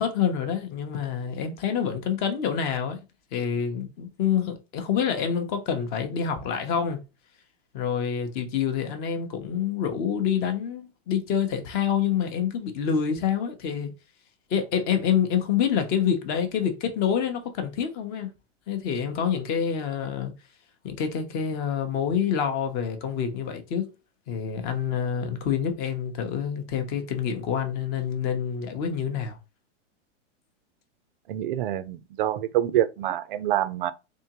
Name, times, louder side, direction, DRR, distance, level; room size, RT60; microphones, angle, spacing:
voice 1, 0.0-3.0 3.3-7.0 7.7-13.9 14.5-18.3 18.7-20.3 20.8-23.9 24.3-29.4, left 8 dB, 25° left, 0.7 m, -27 dB
voice 2, 31.3-33.9, right 12 dB, 45° right, 0.5 m, -26 dB
3.6 x 3.5 x 2.9 m
hypercardioid pair, 150°, 37 cm